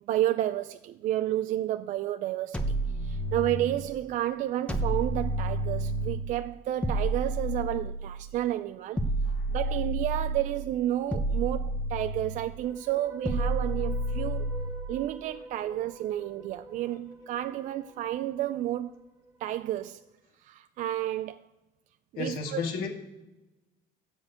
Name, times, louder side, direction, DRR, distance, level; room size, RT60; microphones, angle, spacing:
voice 1, 0.1-2.7 3.0-9.0 9.5-14.5 14.9-18.9 19.4-20.0 20.4-21.4 22.1-22.6, right 13 dB, 55° right, 0.4 m, -31 dB
sound 1, 2.5-3.9 4.7-6.3 6.8-8.2 9.0-10.6 11.1-12.5 13.2-14.9, right 1 dB, 5° left, 0.8 m, -30 dB
sound 2, 12.5-19.7, right 1 dB, 20° right, 1.4 m, -46 dB
voice 2, 22.2-22.9, left 4 dB, 65° left, 2.2 m, -33 dB
12.5 x 5.3 x 8.0 m
cardioid pair, 140°, 16 cm